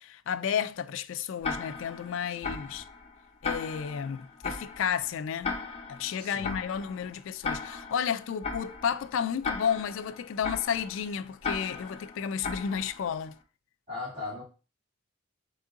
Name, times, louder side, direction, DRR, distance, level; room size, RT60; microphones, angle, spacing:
voice 1, 0.0-2.9 3.4-5.6 5.9-13.4, left 7 dB, 70° left, 0.3 m, -32 dB
Tick-tock, 1.4-13.3, left 4 dB, 30° left, 0.7 m, -38 dB
voice 2, 6.2-6.6 13.9-14.4, left 3 dB, 25° right, 2.3 m, -38 dB
3.7 x 3.7 x 3.6 m
head